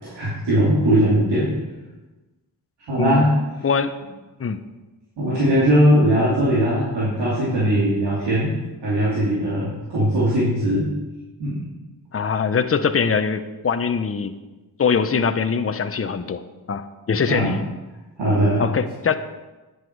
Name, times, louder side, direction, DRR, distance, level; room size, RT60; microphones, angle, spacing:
voice 1, 0.0-1.5 2.9-3.3 5.2-8.5 8.8-10.9 11.4-11.6 17.3-17.6 18.2-18.7, equal, 90° right, -9 dB, 2.9 m, -19 dB
voice 2, 12.1-14.4 14.8-16.4 16.7-17.6 18.6-19.2, left 6 dB, 35° left, 9 dB, 0.8 m, -22 dB
10.5 x 8.2 x 4.7 m, 1.1 s
cardioid pair, 60°, 40 cm